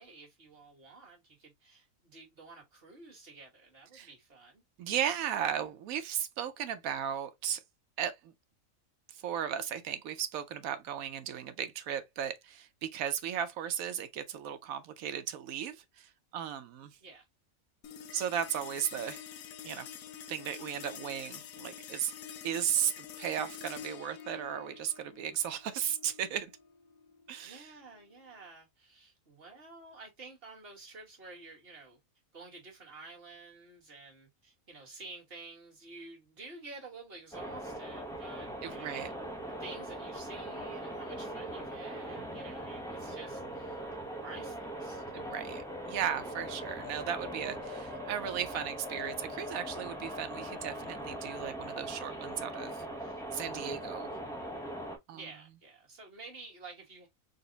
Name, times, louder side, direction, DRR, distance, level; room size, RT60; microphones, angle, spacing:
voice 1, 0.0-4.6 17.0-17.3 27.4-32.0 32.3-39.1 39.6-43.8 44.2-45.0 55.1-57.1, right 3 dB, 45° right, 1.6 m, -50 dB
voice 2, 4.8-7.6 8.0-8.3 9.2-17.0 18.1-19.2 19.6-19.9 20.3-22.1 22.4-26.5 27.3-27.7 38.6-39.1 45.1-52.8 53.3-54.1 55.1-55.2, right 9 dB, 85° right, 1.1 m, -35 dB
sound 1, 17.8-28.4, left 8 dB, 90° left, 1.1 m, -48 dB
sound 2, 37.3-55.0, right 1 dB, 5° left, 0.5 m, -41 dB
4.0 x 2.1 x 3.8 m
omnidirectional pair, 1.4 m